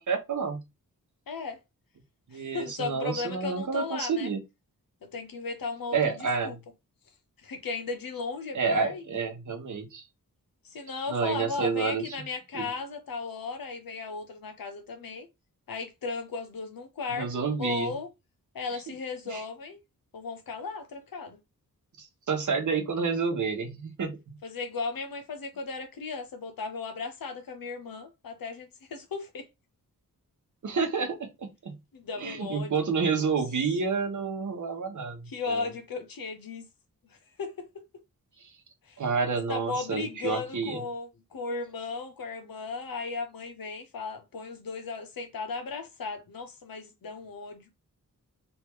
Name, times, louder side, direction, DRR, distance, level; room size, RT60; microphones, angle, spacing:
voice 1, 0.1-0.6 2.3-4.4 5.9-6.6 8.5-10.0 11.1-12.2 12.5-12.7 17.1-17.9 19.3-19.4 22.0-24.2 30.6-31.8 32.2-35.7 38.4-38.5 39.0-40.8, right 5 dB, 55° right, 1.0 m, -29 dB
voice 2, 1.3-1.6 2.3-4.3 5.1-6.6 7.4-9.0 10.6-15.3 15.7-18.1 18.5-19.8 20.1-21.4 24.4-29.5 31.9-33.3 35.3-36.6 37.0-37.7 38.9-39.0 39.5-47.7, left 4 dB, 75° left, 0.9 m, -36 dB
3.4 x 2.6 x 3.1 m
wide cardioid pair, 115°, 35 cm